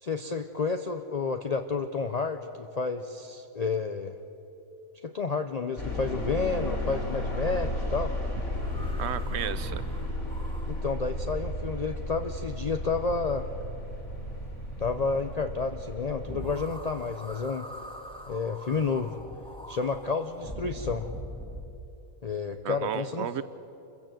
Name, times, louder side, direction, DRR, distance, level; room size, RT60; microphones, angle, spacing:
voice 1, 0.0-4.1 5.0-8.1 10.7-13.5 14.8-17.7 18.3-19.2 19.7-21.1 22.2-23.4, left 4 dB, 40° left, 7 dB, 0.7 m, -30 dB
sound 1, 5.8-16.5, left 1 dB, 60° left, 3.7 m, -34 dB
sound 2, 8.5-12.7 16.2-21.9, equal, 5° left, 1.6 m, -42 dB
voice 2, 9.0-9.8 22.6-23.4, right 9 dB, 60° right, 15 dB, 1.0 m, -33 dB
27.5 x 15.5 x 7.7 m, 3.0 s
omnidirectional pair, 1.4 m